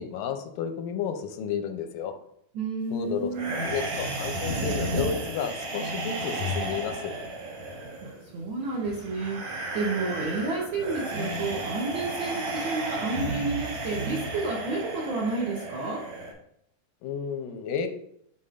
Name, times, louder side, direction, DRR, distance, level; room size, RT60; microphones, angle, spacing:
voice 1, 0.0-2.2 2.9-7.1 17.0-17.9, left 7 dB, 90° left, 6 dB, 2.2 m, -32 dB
voice 2, 2.5-3.6 8.0-16.1, right 3 dB, 90° right, -3 dB, 1.1 m, -31 dB
sound 1, 3.3-16.3, right 1 dB, 60° right, 2.6 m, -33 dB
10.5 x 4.2 x 2.5 m, 0.71 s
omnidirectional pair, 3.8 m